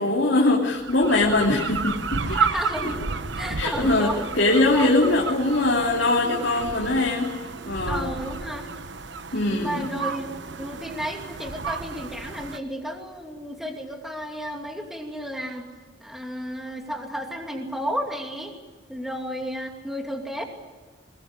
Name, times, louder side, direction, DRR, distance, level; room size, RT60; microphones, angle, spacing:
voice 1, 0.0-2.9 3.5-8.1 9.3-9.9, left 2 dB, 70° left, -3 dB, 3.0 m, -22 dB
sound 1, 0.7-12.6, right 5 dB, 70° right, 1.0 m, -32 dB
voice 2, 2.3-3.0 3.4-4.2 4.7-5.0 7.9-8.7 9.5-10.3 10.6-15.7 16.0-18.5 18.9-20.4, equal, ahead, 2 dB, 2.6 m, -32 dB
22.5 x 20.5 x 9.7 m, 1.3 s
head